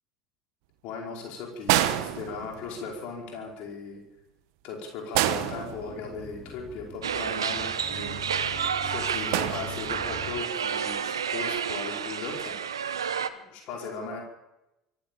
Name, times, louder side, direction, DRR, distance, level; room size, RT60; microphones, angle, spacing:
voice 1, 0.8-4.0 4.6-8.3 8.8-12.6 13.3-14.2, left 4 dB, 55° left, 0 dB, 5.1 m, -38 dB
sound 1, 1.7-2.9 5.1-6.4 9.3-10.2 11.5-11.7, right 13 dB, 60° right, 1.4 m, -28 dB
sound 2, 5.3-10.4, left 1 dB, ahead, 2.7 m, -43 dB
sound 3, 7.0-13.3, right 7 dB, 75° right, 1.1 m, -30 dB
24.5 x 15.0 x 7.2 m, 0.94 s
figure-of-eight pair, 65°, 2 cm